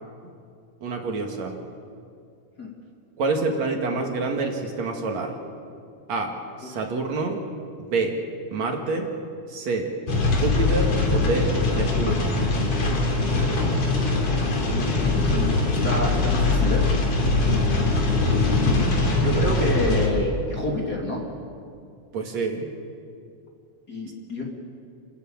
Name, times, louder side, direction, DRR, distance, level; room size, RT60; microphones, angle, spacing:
voice 1, 0.8-1.6 3.2-5.3 6.1-6.3 6.6-7.4 7.8-8.1 8.5-9.1 9.5-9.9 10.4-12.3 22.1-22.7, right 3 dB, 65° right, 2 dB, 3.3 m, -27 dB
sound 1, 10.1-20.1, left 3 dB, 65° left, 4.2 m, -22 dB
voice 2, 13.3-13.7 14.6-16.9 18.6-21.2 23.9-24.4, left 1 dB, 30° left, -1 dB, 3.2 m, -29 dB
29.5 x 13.5 x 8.9 m, 2.3 s
omnidirectional pair, 3.4 m